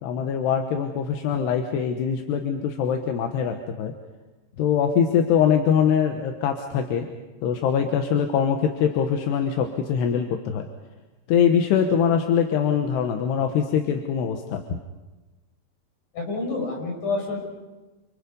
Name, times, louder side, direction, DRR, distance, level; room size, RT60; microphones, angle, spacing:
voice 1, 0.0-3.9 4.6-7.1 7.4-10.7 11.3-14.6, left 8 dB, 80° left, 5 dB, 3.4 m, -23 dB
voice 2, 16.1-17.4, left 3 dB, 45° left, 0 dB, 8.0 m, -28 dB
29.0 x 28.0 x 5.4 m, 1.2 s
omnidirectional pair, 4.7 m